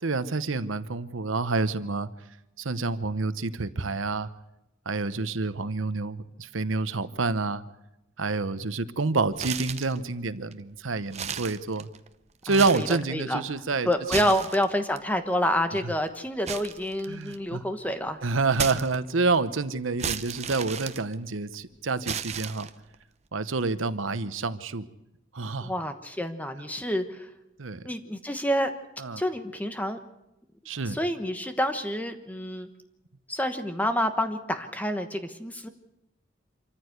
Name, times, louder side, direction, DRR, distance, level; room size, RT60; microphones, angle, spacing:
voice 1, 0.0-2.1 2.6-4.3 4.9-7.6 8.2-11.9 12.4-13.9 14.2-14.3 17.1-17.6 18.2-22.7 23.3-24.9 25.3-25.7 27.6-27.8 29.0-29.2 30.7-31.0, right 3 dB, 85° right, 13 dB, 1.0 m, -28 dB
sound 1, 9.3-10.0 10.5-10.6 11.1-12.1 12.4-13.1 13.9-15.0 16.5-17.5 18.5-19.4 20.0-21.6 22.0-23.0, right 7 dB, 35° right, 0.8 m, -34 dB
voice 2, 12.5-13.4 13.8-18.2 25.6-27.3 27.8-28.7 29.2-30.0 30.8-32.7 33.3-35.7, equal, 10° left, 8 dB, 1.2 m, -28 dB
26.0 x 14.5 x 8.0 m, 0.90 s
head